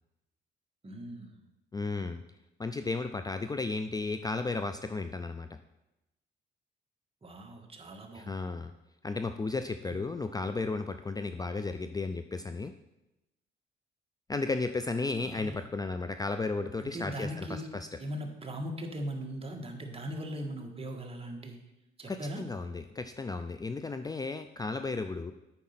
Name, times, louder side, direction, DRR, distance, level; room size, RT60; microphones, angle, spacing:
voice 1, 0.8-1.4 7.2-8.4 9.9-10.0 15.2-15.7 16.8-17.7 18.0-21.6 22.0-22.4, equal, 30° right, 2 dB, 1.6 m, -39 dB
voice 2, 1.7-2.2 2.6-5.5 8.1-8.7 9.0-12.7 14.3-17.9 22.1-25.3, left 3 dB, 20° left, 8 dB, 0.4 m, -34 dB
8.5 x 5.4 x 5.8 m, 0.94 s
cardioid pair, 90°, 20 cm